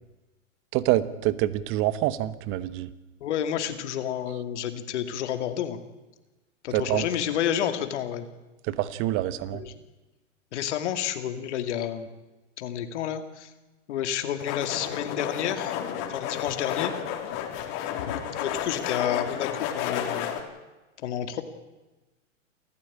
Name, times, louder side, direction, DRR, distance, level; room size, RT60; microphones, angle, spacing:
voice 1, 0.7-2.9 6.7-7.1 8.7-9.6, right 14 dB, 30° right, 15 dB, 1.2 m, -26 dB
voice 2, 3.2-5.8 6.6-8.2 9.5-9.8 10.5-12.1 12.6-13.5 13.9-15.8 16.1-16.9 18.0-20.3 21.0-21.4, left 10 dB, 60° left, 8 dB, 2.6 m, -30 dB
sound 1, 14.4-20.4, left 9 dB, 40° left, 3.8 m, -32 dB
27.5 x 14.5 x 8.7 m, 1.1 s
hypercardioid pair, 135°, 38 cm